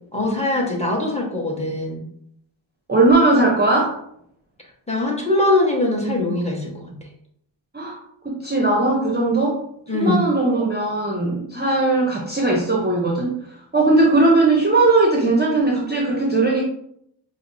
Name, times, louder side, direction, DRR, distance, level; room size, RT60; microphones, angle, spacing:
voice 1, 0.1-2.0 4.9-6.9 9.9-10.2, left 2 dB, 15° left, -1 dB, 1.1 m, -21 dB
voice 2, 2.9-4.0 7.7-8.0 8.2-9.6 9.9-16.6, right 2 dB, 20° right, -1 dB, 0.6 m, -18 dB
5.0 x 2.0 x 2.6 m, 0.71 s
cardioid pair, 40°, 49 cm